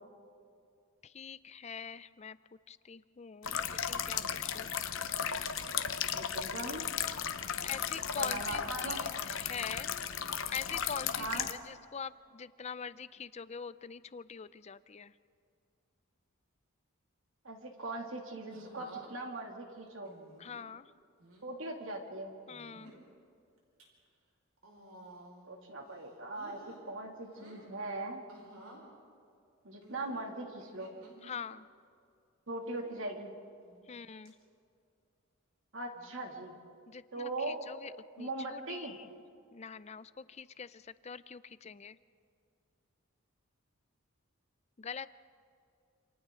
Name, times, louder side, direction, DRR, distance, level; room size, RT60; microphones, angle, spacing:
voice 1, 1.0-4.7 7.6-9.9 10.5-15.1 20.4-20.9 22.5-22.9 31.2-31.7 33.9-34.4 36.9-39.1 39.5-42.0 44.8-45.1, left 6 dB, 30° left, 15 dB, 0.4 m, -44 dB
sound 1, 3.4-11.5, left 8 dB, 65° left, 0.9 m, -35 dB
voice 2, 6.1-6.9 8.2-9.0 11.2-11.5 17.4-20.2 21.4-22.3 25.5-28.2 29.6-31.0 32.5-33.4 35.7-36.6 37.1-37.6 38.2-39.0, right 2 dB, 65° right, 2 dB, 2.5 m, -40 dB
sound 2, 18.5-19.1 20.1-20.6 21.2-21.5 22.5-23.0 23.6-23.8 24.6-25.5 25.8-26.8 27.2-27.7 28.3-28.8 29.8-31.4 32.6-33.0 33.6-34.0 34.3-34.4 35.9-36.3 37.4-37.7, right 1 dB, 85° right, 5.0 m, -55 dB
28.0 x 27.5 x 3.8 m, 2.4 s
head